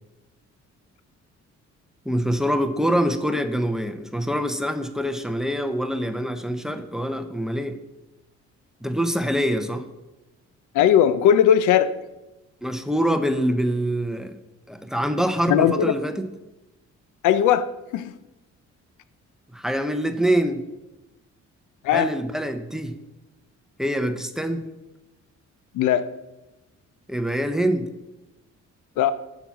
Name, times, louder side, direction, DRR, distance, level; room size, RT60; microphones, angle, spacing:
voice 1, 2.0-7.8 8.8-9.8 12.6-14.4 14.7-16.3 19.5-20.6 21.9-22.9 23.8-24.6 27.1-27.9, equal, ahead, 9 dB, 0.7 m, -25 dB
voice 2, 10.7-11.9 15.5-16.0 17.2-17.7 17.9-18.1 21.8-22.1 25.7-26.1 29.0-29.1, left 9 dB, 85° left, 14 dB, 0.6 m, -18 dB
6.9 x 5.8 x 5.9 m, 1.0 s
cardioid pair, 90°, 30 cm